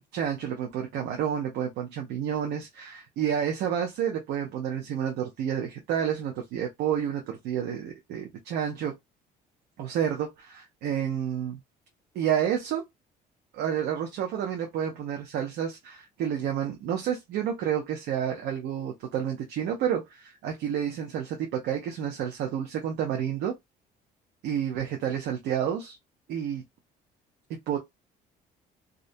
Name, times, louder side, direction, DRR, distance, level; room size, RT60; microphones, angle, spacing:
voice 1, 0.1-8.9 9.8-11.6 12.1-12.8 13.5-23.5 24.4-26.0 26.3-26.6 27.7-27.8, right 9 dB, 80° right, 0.6 m, -30 dB
2.5 x 2.1 x 2.5 m
cardioid pair, 110°, 17 cm